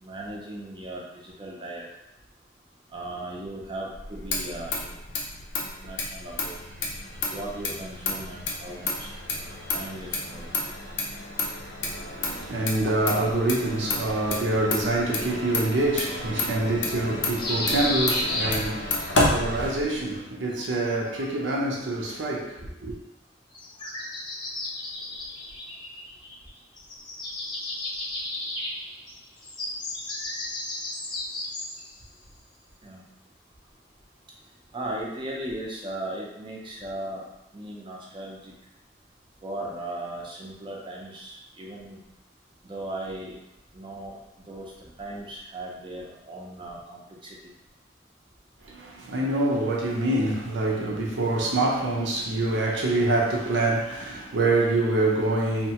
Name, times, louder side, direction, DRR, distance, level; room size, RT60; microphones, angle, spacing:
voice 1, 0.0-1.9 2.9-5.0 5.6-6.6 7.3-9.1 9.7-10.5 32.8-33.0 34.7-37.2 37.5-38.5 39.4-42.0 42.6-43.3 43.7-44.7 45.0-47.4, right 1 dB, 25° right, 0.5 m, -37 dB
Motor vehicle (road), 3.9-20.2, left 2 dB, 75° left, 0.5 m, -31 dB
sound 1, 5.2-19.8, left 1 dB, 90° left, 0.9 m, -41 dB
voice 2, 11.9-22.9 48.7-55.7, right 2 dB, 85° right, 0.6 m, -26 dB
sound 2, 17.4-19.1 20.5-21.6 23.5-26.5 26.8-31.9, left 1 dB, 25° left, 0.5 m, -33 dB
2.8 x 2.2 x 2.8 m
head